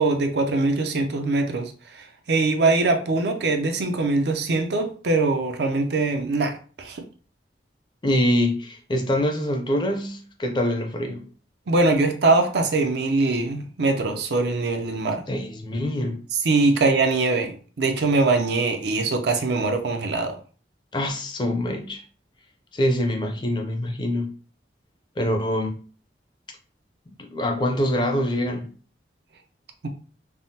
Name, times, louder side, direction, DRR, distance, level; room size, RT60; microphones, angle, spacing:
voice 1, 0.0-7.0 11.7-15.2 16.4-20.3, right 3 dB, 65° right, 0.5 m, -22 dB
voice 2, 8.0-11.2 15.3-16.2 20.9-22.0 22.7-24.3 25.2-25.8 27.1-28.7, left 1 dB, 25° left, 0.4 m, -25 dB
3.5 x 2.0 x 2.7 m
head